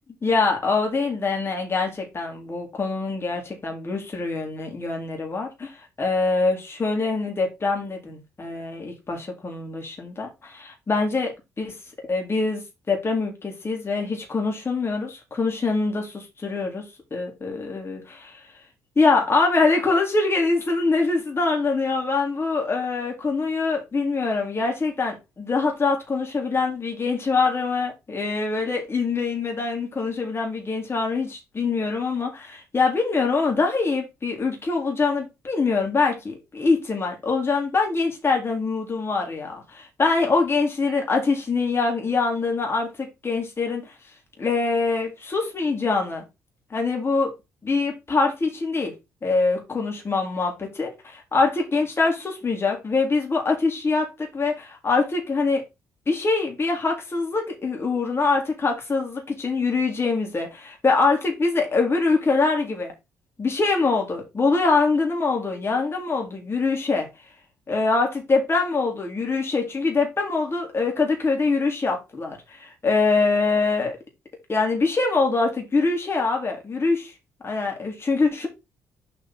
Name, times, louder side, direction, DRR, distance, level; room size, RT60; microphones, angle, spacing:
voice 1, 0.2-11.7 12.0-16.8 17.1-18.4 19.0-43.9 44.4-46.2 46.7-47.3 47.6-48.9 49.2-55.7 56.1-62.9 63.4-67.1 67.7-74.0 74.5-77.1 77.4-78.5, left 4 dB, 30° left, 3.6 m, -24 dB
7.4 x 5.2 x 3.9 m
hypercardioid pair, 45°, 8 cm